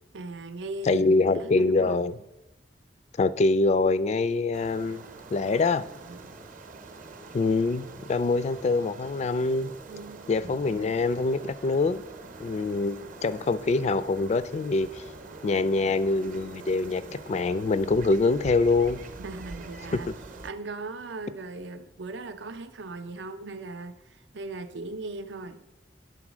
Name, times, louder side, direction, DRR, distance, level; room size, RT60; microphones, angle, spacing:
voice 1, 0.1-1.0 1.4-2.0 6.0-6.3 9.9-10.3 19.2-20.1 20.4-25.6, right 3 dB, 85° right, 9 dB, 0.6 m, -38 dB
voice 2, 0.9-2.1 3.2-5.0 5.3-5.9 7.3-9.7 10.3-12.0 12.4-15.0 15.4-17.0 17.3-19.0 19.9-20.0, left 3 dB, 40° left, 14 dB, 0.3 m, -24 dB
sound 1, 4.5-20.5, right 3 dB, 45° right, 0.7 m, -44 dB
9.8 x 3.9 x 6.1 m, 0.93 s
head